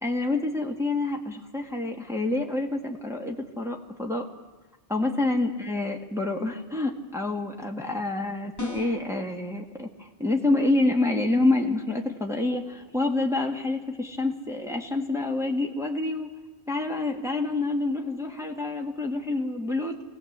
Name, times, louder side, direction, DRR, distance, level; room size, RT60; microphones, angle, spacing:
voice 1, 0.0-4.3 4.9-16.3 16.7-20.0, left 2 dB, 5° right, 1 dB, 1.8 m, -27 dB
sound 1, 8.6-9.1, left 3 dB, 15° left, 1.3 m, -36 dB
24.5 x 18.0 x 8.1 m, 1.3 s
omnidirectional pair, 1.1 m